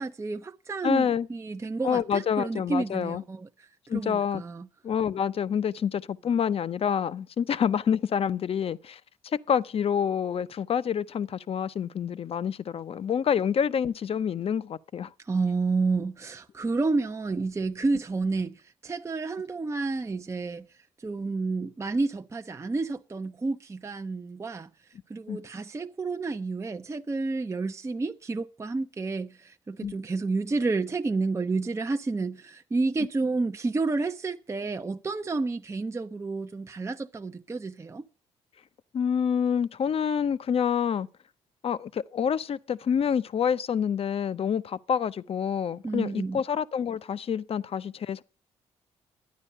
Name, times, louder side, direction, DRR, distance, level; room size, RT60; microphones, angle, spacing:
voice 1, 0.0-4.7 15.2-20.7 21.0-24.7 25.1-38.0 45.8-46.4, right 3 dB, 20° right, 0.6 m, -30 dB
voice 2, 0.8-1.3 1.8-3.2 3.9-4.4 4.8-15.1 25.3-25.4 29.8-30.0 38.9-41.1 41.6-48.2, left 7 dB, 50° left, 0.6 m, -27 dB
11.5 x 9.7 x 5.5 m
supercardioid pair, 55°, 13 cm